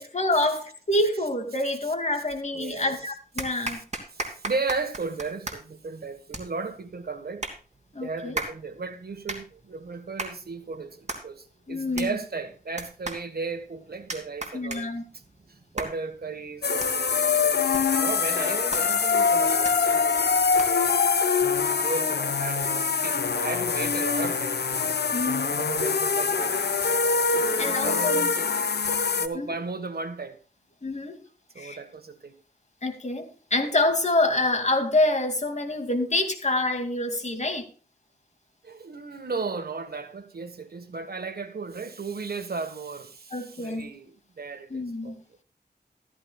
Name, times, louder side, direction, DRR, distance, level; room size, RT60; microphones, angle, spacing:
voice 1, 0.0-3.8 7.9-8.3 11.7-12.2 14.5-15.0 25.1-25.6 27.6-28.3 29.3-29.5 30.8-31.2 31.6-31.8 32.8-37.7 43.3-43.9 44.7-45.2, left 2 dB, 45° left, 2.5 m, -26 dB
sound 1, 2.3-2.8 3.4-20.9, right 2 dB, 45° right, 2.8 m, -39 dB
voice 2, 2.5-3.0 3.6-3.8 4.1-7.5 8.0-14.9 15.5-21.1 21.8-24.6 24.8-24.9 25.5-26.7 27.3-28.6 29.2-30.4 31.5-32.4 38.6-45.2, right 4 dB, 70° right, 1.5 m, -35 dB
sound 2, 16.6-29.3, left 5 dB, 85° left, 0.9 m, -24 dB
14.0 x 13.5 x 2.4 m
wide cardioid pair, 80°, 17 cm